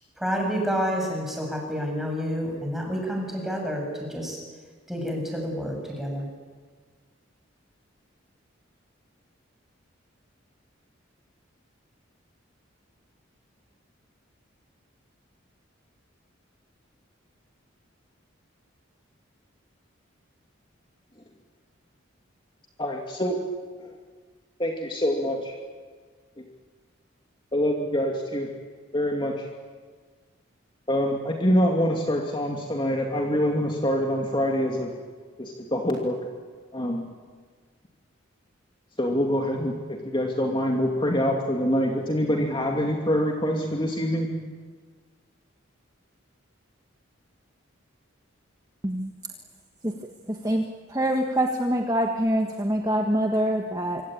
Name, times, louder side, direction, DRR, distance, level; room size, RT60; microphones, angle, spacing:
voice 1, 0.2-4.4 4.9-6.3, equal, ahead, 0 dB, 7.4 m, -29 dB
voice 2, 22.8-23.4 23.8-23.9 24.6-25.5 26.4-26.5 27.5-28.5 28.9-29.3 30.9-34.9 35.4-36.2 36.7-37.1 39.0-39.7 40.0-44.3, equal, 25° left, 1 dB, 2.6 m, -25 dB
voice 3, 50.4-54.0, right 1 dB, 20° right, 3 dB, 1.4 m, -25 dB
25.5 x 25.0 x 9.3 m, 1.5 s
head